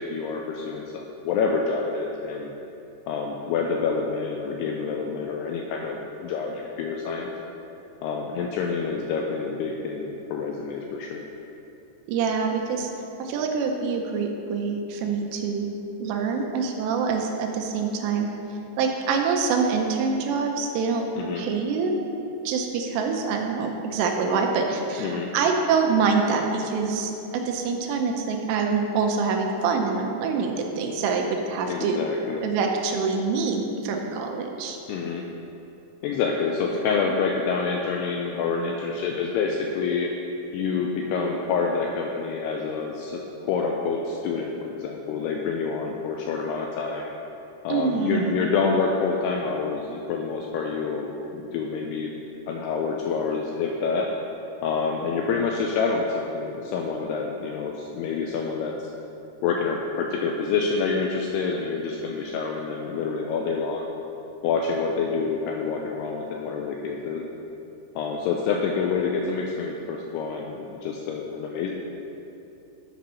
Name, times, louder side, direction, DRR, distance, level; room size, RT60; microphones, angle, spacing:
voice 1, 0.0-2.5 3.1-7.3 8.0-11.3 21.2-21.4 25.0-25.3 31.7-32.5 34.9-35.2 36.0-40.1 40.5-47.1 47.6-51.1 51.3-52.1 52.5-54.1 54.6-58.7 59.4-63.9 64.4-67.2 68.0-71.7, left 5 dB, 85° left, 1 dB, 2.3 m, -27 dB
voice 2, 12.1-12.9 13.2-15.7 16.0-18.3 18.8-21.0 21.4-21.9 22.5-32.0 32.4-34.8 47.7-48.3, right 5 dB, 80° right, 2 dB, 2.8 m, -25 dB
8.8 x 5.2 x 5.5 m, 2.9 s
omnidirectional pair, 5.1 m